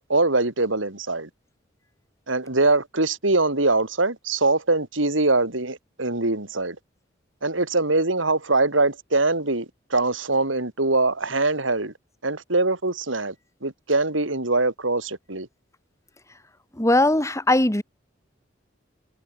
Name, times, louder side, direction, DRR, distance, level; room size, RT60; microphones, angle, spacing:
voice 1, 0.1-1.3 2.3-6.8 7.4-11.9 12.2-13.3 13.6-15.5, right 2 dB, 90° right, 4.2 m, -23 dB
voice 2, 16.8-17.8, left 1 dB, 15° left, 1.8 m, -19 dB
head